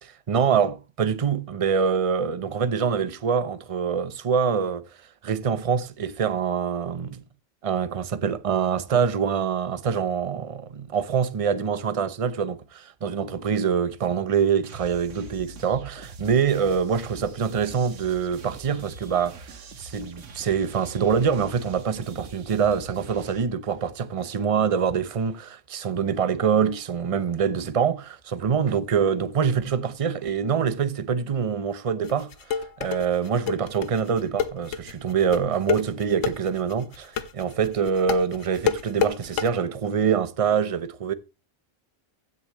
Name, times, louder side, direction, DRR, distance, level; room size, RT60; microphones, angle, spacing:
voice 1, 0.0-4.9 5.2-7.2 7.6-41.1, right 7 dB, 35° right, 0.7 m, -25 dB
sound 1, 14.6-23.4, right 3 dB, 75° right, 1.6 m, -44 dB
sound 2, 32.0-39.5, left 7 dB, 85° left, 1.2 m, -27 dB
15.5 x 6.9 x 3.0 m
omnidirectional pair, 1.3 m